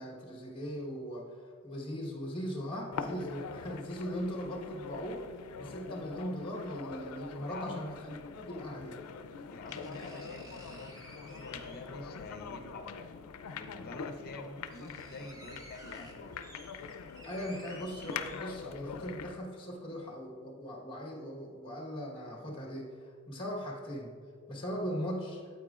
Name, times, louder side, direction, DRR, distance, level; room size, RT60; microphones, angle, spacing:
voice 1, 0.0-5.3 5.6-9.0 17.2-24.1 24.5-25.4, equal, 25° left, -1 dB, 1.2 m, -39 dB
sound 1, 2.9-19.4, left 5 dB, 90° left, 0.4 m, -44 dB
voice 2, 7.4-7.9 9.5-10.9 11.2-13.1 13.6-16.4, left 2 dB, 45° left, 5 dB, 0.7 m, -47 dB
sound 2, 9.7-12.0 13.4-13.5 14.1-14.2 14.4-18.9 19.3-19.4, right 1 dB, 15° right, 0.6 m, -54 dB
9.0 x 8.2 x 2.4 m, 2.1 s
head